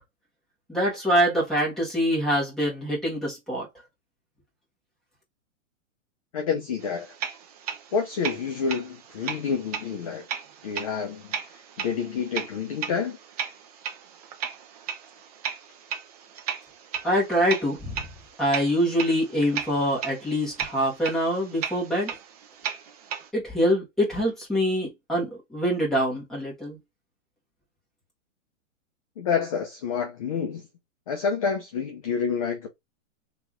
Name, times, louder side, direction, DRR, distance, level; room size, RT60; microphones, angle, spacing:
voice 1, 0.7-3.7 17.0-18.1 18.4-22.1 23.3-26.8, equal, ahead, 1.4 m, -25 dB
voice 2, 6.3-7.1 7.9-10.3 10.6-13.2 29.2-30.6 31.1-32.7, left 6 dB, 30° left, 0.5 m, -28 dB
sound 1, 6.8-23.3, right 7 dB, 30° right, 0.6 m, -36 dB
3.3 x 2.9 x 3.6 m
hypercardioid pair, 165°, 39 cm